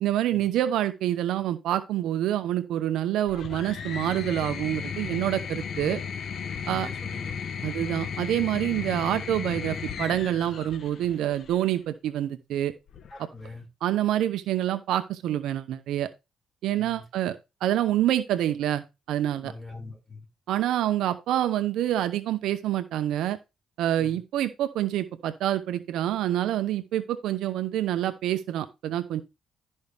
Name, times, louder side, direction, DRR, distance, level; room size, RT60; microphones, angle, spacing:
voice 1, 0.0-6.0 6.7-6.9 7.6-12.7 13.8-16.1 16.6-17.4 17.6-19.5 20.5-23.4 23.8-29.2, right 12 dB, 85° right, 0.8 m, -27 dB
sound 1, 3.3-11.7 12.9-13.5, left 6 dB, 60° left, 1.2 m, -35 dB
voice 2, 6.6-7.8 13.1-13.7 16.8-17.0 19.4-20.3 24.0-24.2, left 3 dB, ahead, 5.4 m, -43 dB
12.5 x 5.4 x 3.4 m
cardioid pair, 90°, 0 cm